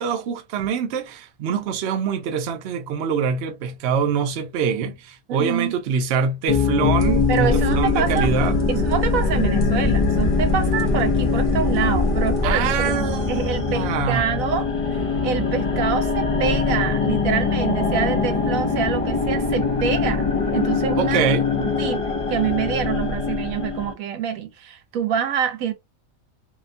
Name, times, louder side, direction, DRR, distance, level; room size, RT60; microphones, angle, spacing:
voice 1, 0.0-8.6 12.4-14.3 21.0-21.4, right 6 dB, 65° right, 0.7 m, -24 dB
voice 2, 5.3-5.7 7.3-8.3 8.7-14.7 15.2-21.2 21.5-22.0 22.3-25.7, right 7 dB, 80° right, 1.0 m, -26 dB
sound 1, 6.5-23.9, left 5 dB, 45° left, 0.4 m, -23 dB
sound 2, 7.0-12.5, left 1 dB, 30° right, 0.9 m, -25 dB
2.8 x 2.2 x 2.5 m
omnidirectional pair, 1.5 m